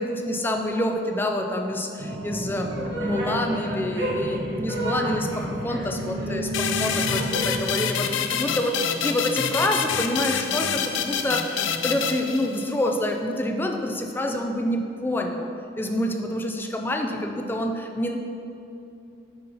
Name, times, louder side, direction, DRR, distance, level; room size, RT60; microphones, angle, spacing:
voice 1, 0.0-2.7 3.0-15.5 15.8-18.2, left 1 dB, 10° left, 3 dB, 0.4 m, -27 dB
sound 1, 2.0-7.7, equal, 75° right, 1.2 m, -30 dB
sound 2, 6.5-12.9, left 7 dB, 90° left, 0.4 m, -27 dB
5.5 x 4.1 x 5.3 m, 2.7 s
head